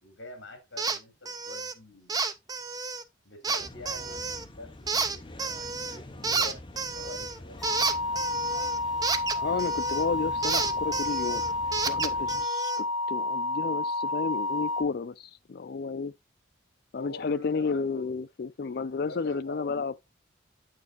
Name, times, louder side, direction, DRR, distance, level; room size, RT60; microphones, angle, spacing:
voice 1, 0.0-2.3 3.2-5.3 5.7-7.7 8.0-8.3 16.9-18.1 19.0-19.7, left 2 dB, 70° left, 2.8 m, -45 dB
sound 1, 0.8-1.0 1.3-1.7 2.1-3.0 3.4-4.4 4.9-6.0 6.2-10.1 10.4-12.8, right 4 dB, 20° right, 0.4 m, -31 dB
sound 2, 3.6-12.5, left 1 dB, 25° left, 0.7 m, -45 dB
sound 3, 7.6-14.8, left 2 dB, 5° left, 2.7 m, -30 dB
voice 2, 9.4-11.4 11.9-16.1 16.9-20.1, left 4 dB, 50° left, 0.4 m, -32 dB
8.3 x 6.6 x 2.5 m
head